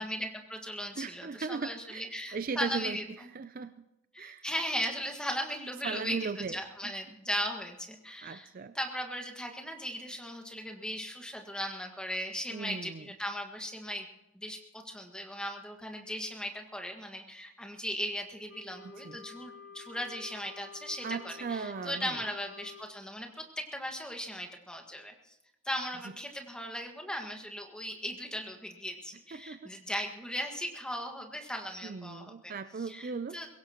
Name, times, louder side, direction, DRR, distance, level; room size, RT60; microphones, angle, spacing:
voice 1, 0.0-3.0 4.1-8.5 8.7-14.1 14.3-25.4 25.6-32.5 32.9-33.5, equal, 5° left, 3 dB, 1.7 m, -37 dB
voice 2, 1.0-3.8 4.2-4.5 5.8-6.9 8.2-8.8 12.5-13.1 18.8-19.2 21.0-22.2 26.0-26.1 29.3-29.8 31.8-33.4, right 5 dB, 40° right, 12 dB, 0.4 m, -38 dB
Wind instrument woodwind instrument, 18.5-22.9, left 5 dB, 50° left, 0.6 m, -50 dB
23.0 x 16.5 x 3.0 m, 0.89 s
head